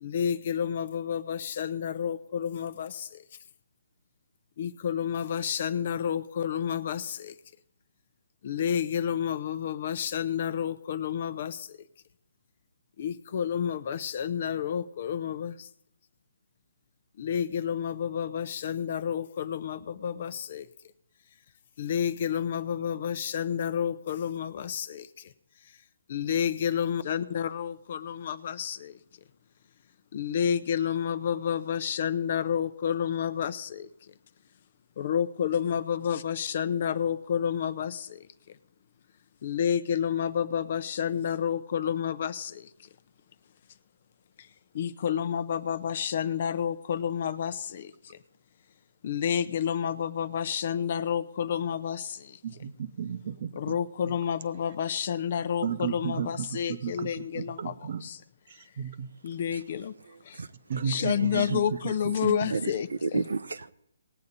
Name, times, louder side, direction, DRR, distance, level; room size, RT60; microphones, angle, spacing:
voice 1, 0.0-3.2 4.6-7.3 8.4-11.8 13.0-15.7 17.2-20.7 21.8-25.1 26.1-28.9 30.1-33.9 35.0-38.2 39.4-42.7 44.7-48.2 49.0-52.3 53.5-58.2 59.2-59.9 60.3-60.4 60.9-63.2, left 8 dB, 45° left, 0.7 m, -30 dB
voice 2, 52.4-53.5 55.6-58.0 58.8-59.1 60.7-61.9 62.4-62.6, right 8 dB, 50° right, 0.9 m, -33 dB
voice 3, 60.1-61.5 61.9-63.7, right 4 dB, 85° right, 0.7 m, -34 dB
19.0 x 8.5 x 4.1 m
hypercardioid pair, 155°, 0 cm